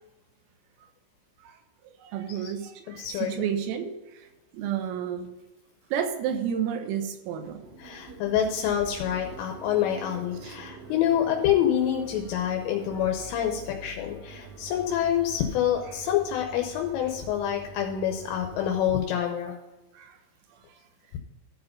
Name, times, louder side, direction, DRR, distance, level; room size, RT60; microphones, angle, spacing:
voice 1, 2.0-4.3 4.5-5.3 5.9-7.7 10.4-10.6 19.9-20.2, right 8 dB, 85° right, 6 dB, 3.7 m, -31 dB
voice 2, 2.9-3.4 7.8-19.5, left 10 dB, 80° left, 2 dB, 3.3 m, -27 dB
sound 1, 5.2-5.3 5.8-6.2 6.5-6.6 6.9-7.0 7.3-18.8, right 2 dB, 65° right, 2.3 m, -45 dB
14.0 x 4.7 x 5.3 m, 1.1 s
omnidirectional pair, 5.9 m